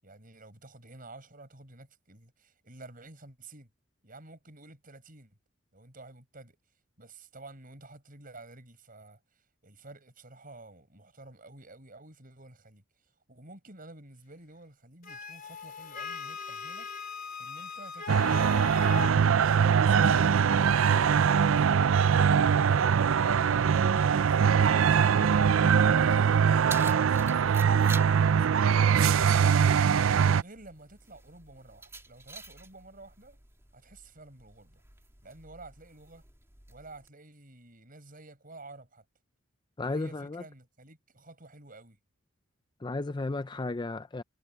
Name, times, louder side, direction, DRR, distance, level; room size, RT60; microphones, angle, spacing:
voice 1, 0.0-3.7 4.0-5.4 5.7-6.6 7.0-12.8 13.3-19.3 19.7-21.7 22.0-22.3 22.6-25.2 26.0-29.8 30.2-33.4 33.7-34.8 35.2-36.2 36.7-39.0 39.9-42.0, right 2 dB, 45° right, 7.3 m, -51 dB
Wind instrument woodwind instrument, 15.0-19.1, left 6 dB, 45° left, 4.2 m, -39 dB
sound 1, 18.1-30.4, right 7 dB, 80° right, 0.4 m, -22 dB
Keys jangling, 26.2-37.1, right 3 dB, 15° right, 3.1 m, -48 dB
voice 2, 39.8-40.4 42.8-44.2, left 2 dB, 20° left, 0.5 m, -33 dB
head